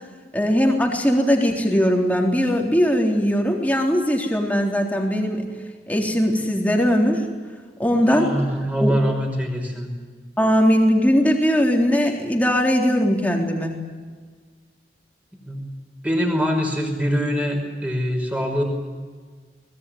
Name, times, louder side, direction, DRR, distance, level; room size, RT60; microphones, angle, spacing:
voice 1, 0.3-5.5 5.9-7.2 7.8-8.3 8.8-8.9 10.4-13.7, equal, 10° left, 1 dB, 3.7 m, -19 dB
voice 2, 8.0-9.9 15.3-15.7 16.0-18.6, equal, 10° right, 2 dB, 5.5 m, -24 dB
24.0 x 20.5 x 9.4 m, 1.5 s
head